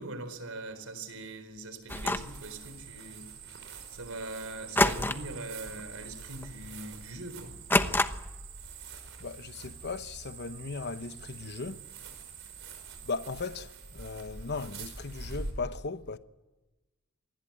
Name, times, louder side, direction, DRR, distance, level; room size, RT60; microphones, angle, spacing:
voice 1, 0.0-3.3 3.9-7.6, right 2 dB, 85° right, 4.4 m, -41 dB
sound 1, 1.9-2.4 4.8-5.4 5.7-6.0 6.4-6.5 7.7-8.4, left 2 dB, 10° left, 1.0 m, -27 dB
sound 2, 1.9-15.5, right 4 dB, 65° right, 5.6 m, -45 dB
voice 2, 9.2-11.9 13.0-16.2, left 4 dB, 55° left, 1.0 m, -37 dB
27.0 x 20.0 x 8.9 m
head